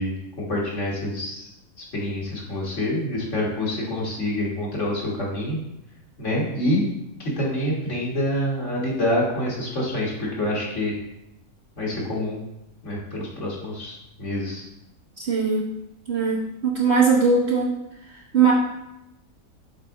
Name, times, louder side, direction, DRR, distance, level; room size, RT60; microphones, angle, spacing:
voice 1, 0.0-1.5 1.8-5.6 6.2-6.8 7.2-10.9 11.8-12.4 12.8-14.6, left 1 dB, 55° left, -5 dB, 2.0 m, -27 dB
voice 2, 15.2-15.7 16.1-17.7 18.3-18.5, right 5 dB, 50° right, -4 dB, 1.1 m, -20 dB
7.6 x 4.1 x 3.7 m, 0.86 s
omnidirectional pair, 1.5 m